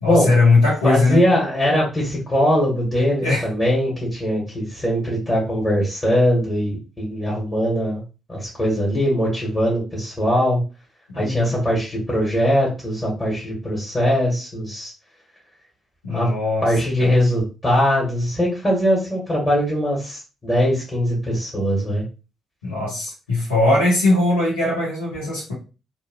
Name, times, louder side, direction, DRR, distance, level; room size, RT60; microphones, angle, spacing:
voice 1, 0.0-1.2 3.2-3.5 11.1-11.6 16.0-16.7 17.0-17.1 22.6-25.5, left 2 dB, 80° left, -5 dB, 1.1 m, -20 dB
voice 2, 0.8-8.0 8.3-10.6 11.1-14.9 16.1-16.3 16.6-22.0, equal, 25° left, -5 dB, 1.4 m, -21 dB
3.0 x 2.4 x 2.3 m, 0.31 s
figure-of-eight pair, 40°, 0 cm